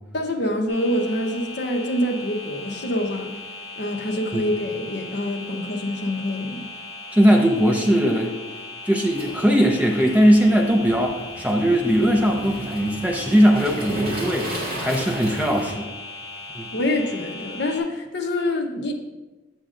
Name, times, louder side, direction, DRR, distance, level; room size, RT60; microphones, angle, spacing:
voice 1, 0.1-3.3 3.8-6.6 16.7-18.9, left 1 dB, 50° left, 3 dB, 0.7 m, -26 dB
sound 1, 0.7-17.8, left 2 dB, 35° left, 2.3 m, -38 dB
voice 2, 7.1-8.3 8.8-15.9 16.5-16.7, equal, 5° right, 2 dB, 0.5 m, -19 dB
Waves surf, 9.1-15.7, right 1 dB, 45° right, 2.1 m, -35 dB
7.8 x 7.1 x 2.5 m, 1.1 s
head